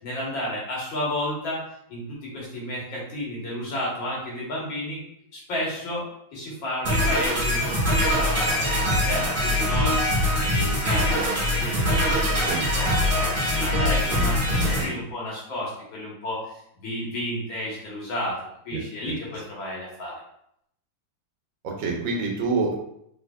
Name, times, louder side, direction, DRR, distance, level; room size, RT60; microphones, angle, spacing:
voice 1, 0.0-1.6 1.9-5.0 5.3-6.0 6.3-10.0 10.4-16.4 16.8-18.4 18.7-20.2, left 1 dB, 80° left, -5 dB, 2.1 m, -32 dB
sound 1, 6.8-14.9, left 1 dB, 30° right, 1.3 m, -23 dB
voice 2, 18.7-19.1 21.6-22.8, right 4 dB, 80° right, 0 dB, 1.5 m, -27 dB
3.8 x 3.4 x 2.3 m, 0.73 s
omnidirectional pair, 2.1 m